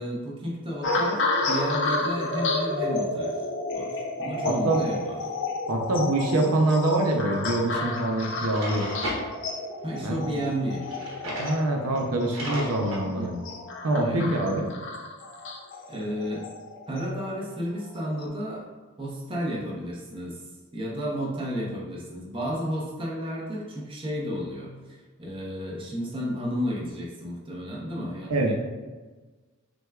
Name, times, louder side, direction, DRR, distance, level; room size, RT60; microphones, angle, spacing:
voice 1, 0.0-3.3 3.7-5.2 9.8-10.8 13.1-13.4 13.9-14.3 15.9-16.5 16.9-18.7 19.0-20.4 20.7-24.7 25.2-28.5, equal, 25° right, -4 dB, 0.8 m, -32 dB
sound 1, 0.8-17.3 18.0-18.3, left 2 dB, 55° left, 0.5 m, -31 dB
voice 2, 4.4-4.8 5.7-8.9 10.0-10.2 11.4-13.3 13.8-14.7 28.3-28.5, right 2 dB, 80° right, 2 dB, 0.6 m, -25 dB
Drawer open or close, 7.7-7.9 8.4-9.2 10.8-11.6 11.9-12.0 12.3-13.0, equal, 65° right, 1.1 m, -34 dB
6.0 x 2.2 x 2.3 m, 1.3 s
head